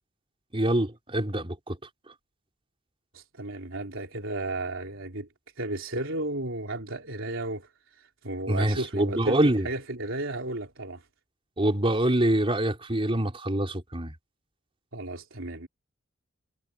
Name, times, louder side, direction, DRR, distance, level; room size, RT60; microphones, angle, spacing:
voice 1, 0.5-1.8 8.5-9.7 11.6-14.1, right 1 dB, 25° right, 3.6 m, -25 dB
voice 2, 3.1-5.3 5.6-7.7 8.0-11.0 14.9-15.7, right 2 dB, 70° right, 4.1 m, -33 dB
head